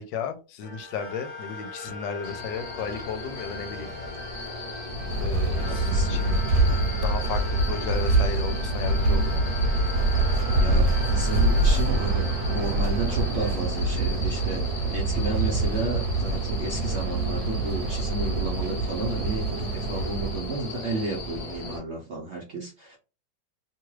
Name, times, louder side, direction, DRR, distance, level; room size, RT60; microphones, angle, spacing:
voice 1, 0.0-3.9 5.2-6.4 7.0-9.5, left 6 dB, 85° left, 7 dB, 1.3 m, -34 dB
sound 1, 0.6-14.4, left 2 dB, 40° left, 1.1 m, -40 dB
sound 2, 2.2-21.8, left 3 dB, 25° left, 0.8 m, -37 dB
sound 3, 4.9-20.6, right 2 dB, 80° right, 1.2 m, -25 dB
voice 2, 5.6-6.2 6.7-6.8 10.6-14.6 14.9-23.0, right 3 dB, 60° right, -2 dB, 0.7 m, -33 dB
3.0 x 2.3 x 3.1 m, 0.32 s
omnidirectional pair, 1.9 m